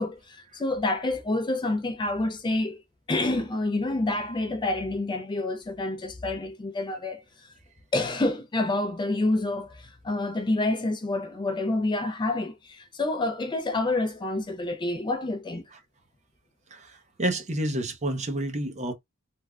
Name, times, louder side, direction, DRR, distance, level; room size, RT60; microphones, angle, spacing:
voice 1, 0.0-2.8 3.1-7.5 7.9-15.6, left 2 dB, 20° left, 0.4 m, -28 dB
voice 2, 16.7-18.9, right 1 dB, 35° right, 0.7 m, -29 dB
3.4 x 2.1 x 2.3 m
head